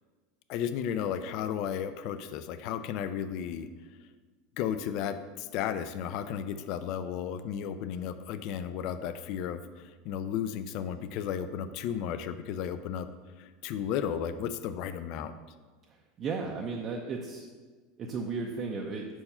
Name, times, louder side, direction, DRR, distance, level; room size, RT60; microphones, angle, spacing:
voice 1, 0.5-3.7 4.6-13.1 13.4-15.4, left 8 dB, 50° left, 11 dB, 0.3 m, -34 dB
voice 2, 15.9-17.5 18.0-19.1, right 4 dB, 30° right, 1 dB, 0.5 m, -35 dB
4.6 x 4.3 x 5.5 m, 1.4 s
supercardioid pair, 145°, 0 cm